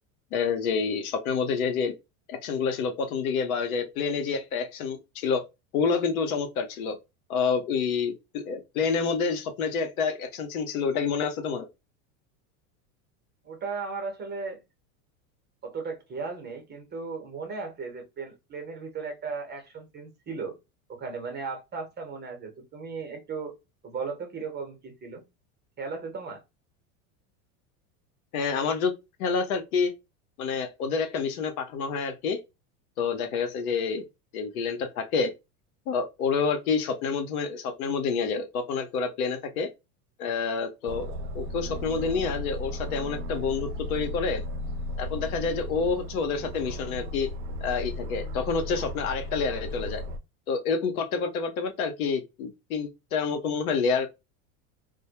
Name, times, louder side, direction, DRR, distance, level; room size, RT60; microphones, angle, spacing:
voice 1, 0.3-1.9 2.3-5.4 5.7-7.0 7.3-11.7 28.3-28.9 29.2-29.9 30.4-32.4 33.0-34.0 34.3-35.3 35.9-39.7 40.2-44.4 45.0-47.3 47.6-50.0 50.5-54.1, left 5 dB, 80° left, 0.8 m, -28 dB
voice 2, 13.4-14.6 15.6-20.6 20.9-23.6 23.8-25.2 25.8-26.4, right 4 dB, 25° right, 0.8 m, -36 dB
Aircraft, 40.9-50.2, left 1 dB, 50° right, 0.5 m, -35 dB
2.2 x 2.1 x 2.7 m
supercardioid pair, 110°, 42 cm